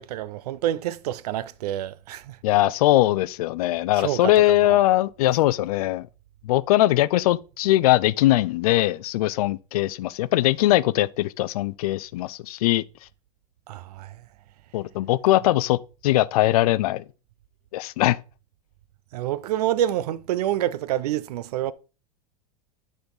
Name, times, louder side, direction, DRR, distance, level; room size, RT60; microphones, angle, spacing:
voice 1, 0.0-2.4 4.0-4.8 13.7-14.3 19.1-21.7, right 12 dB, 80° right, 0.6 m, -28 dB
voice 2, 2.4-6.1 6.4-12.8 14.7-17.0 17.7-18.2, left 16 dB, 70° left, 0.5 m, -21 dB
9.6 x 4.0 x 4.0 m
supercardioid pair, 160°, 20 cm